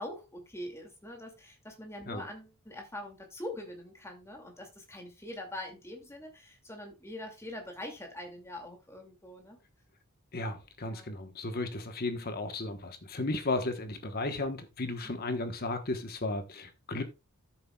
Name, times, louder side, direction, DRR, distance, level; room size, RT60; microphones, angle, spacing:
voice 1, 0.0-9.6 10.8-11.1 14.8-15.2, left 1 dB, 10° left, 2.3 m, -43 dB
voice 2, 10.3-17.0, left 2 dB, 45° left, 1.1 m, -34 dB
13.5 x 7.1 x 2.3 m
head